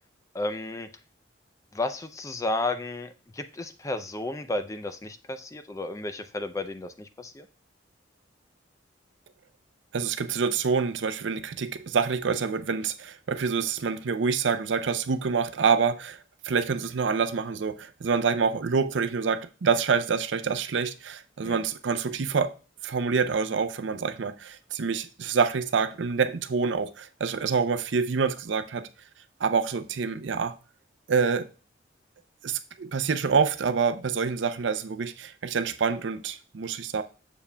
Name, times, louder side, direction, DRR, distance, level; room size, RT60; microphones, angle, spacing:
voice 1, 0.3-0.9 1.7-7.4 21.4-21.6, left 2 dB, 15° left, 0.4 m, -33 dB
voice 2, 9.9-16.2 16.4-22.5 22.8-28.9 29.4-30.5 31.1-31.5 32.4-37.0, right 5 dB, 75° right, 0.5 m, -26 dB
7.1 x 6.9 x 2.2 m
head